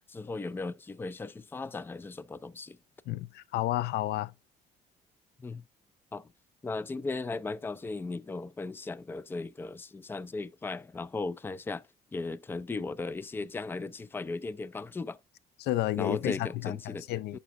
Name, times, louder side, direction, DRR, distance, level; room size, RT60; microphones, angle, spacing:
voice 1, 0.1-2.8 5.4-5.6 6.1-6.3 6.6-11.8 12.1-15.2 16.0-17.1 17.3-17.4, left 3 dB, 15° left, 0.4 m, -37 dB
voice 2, 3.1-4.3 15.6-17.4, left 14 dB, 75° left, 0.5 m, -31 dB
11.5 x 4.1 x 2.5 m
cardioid pair, 110°, 17 cm